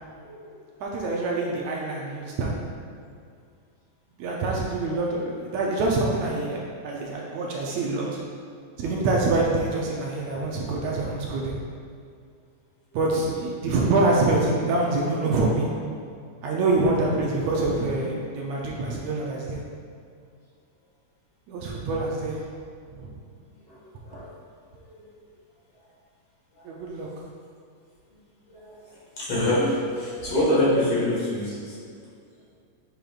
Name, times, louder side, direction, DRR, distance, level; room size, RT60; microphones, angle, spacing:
voice 1, 0.8-2.6 4.2-8.2 8.8-11.6 12.9-15.7 16.4-19.6 21.5-22.4 22.9-23.1 26.6-27.1, right 2 dB, 75° right, -3 dB, 1.8 m, -25 dB
voice 2, 28.5-31.8, left 1 dB, 55° left, -8 dB, 2.5 m, -25 dB
7.7 x 5.3 x 2.4 m, 2.3 s
omnidirectional pair, 3.4 m